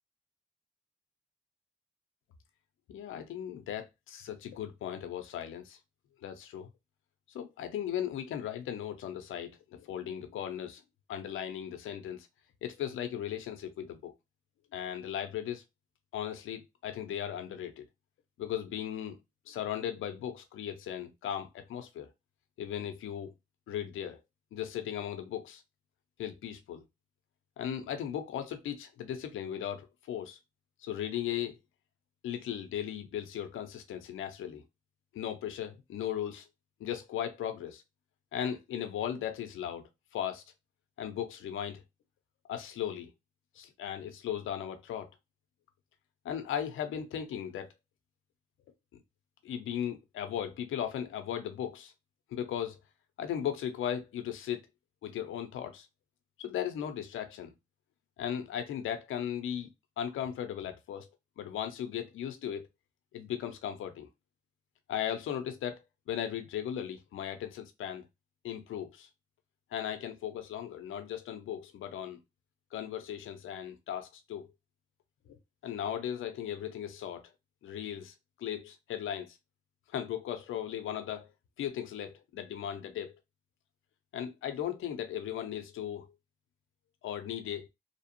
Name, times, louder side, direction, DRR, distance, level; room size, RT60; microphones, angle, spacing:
voice 1, 2.9-5.8 6.2-6.7 7.3-10.8 11.1-12.3 12.6-14.1 14.7-15.6 16.1-17.8 18.4-19.2 19.5-22.1 22.6-23.3 23.7-24.2 24.5-25.6 26.2-26.8 27.6-30.4 30.8-31.6 32.2-34.6 35.1-36.5 36.8-37.8 38.3-40.4 41.0-41.8 42.5-43.1 43.6-45.1 46.2-47.7 49.4-51.9 52.3-52.8 53.2-54.6 55.0-55.9 56.4-57.5 58.2-59.7 60.0-61.1 61.4-62.7 63.1-64.1 64.9-68.1 68.4-69.1 69.7-72.2 72.7-74.5 75.3-75.4 75.6-77.2 77.6-79.4 79.9-81.3 81.6-83.2 84.1-86.1 87.0-87.7, left 10 dB, 85° left, 0.6 m, -37 dB
2.7 x 2.0 x 2.9 m
cardioid pair, 55°, 20 cm